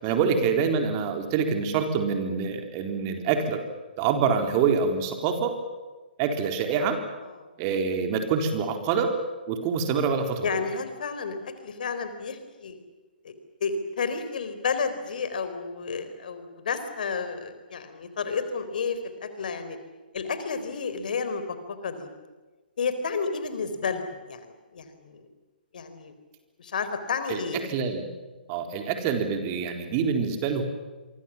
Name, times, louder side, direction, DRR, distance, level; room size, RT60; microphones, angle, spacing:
voice 1, 0.0-3.6 4.0-5.5 6.2-7.0 7.6-9.1 9.5-10.6 27.3-27.4 27.6-28.1 28.5-30.6, right 6 dB, 30° right, 5 dB, 4.0 m, -26 dB
voice 2, 10.4-11.4 11.6-12.8 13.2-13.3 13.6-19.8 20.1-21.6 21.8-22.1 22.8-24.4 24.7-24.8 25.1-25.2 25.7-26.1 26.6-27.6, left 5 dB, 60° left, 10 dB, 4.1 m, -31 dB
27.5 x 24.0 x 7.4 m, 1.2 s
figure-of-eight pair, 130°, 5 cm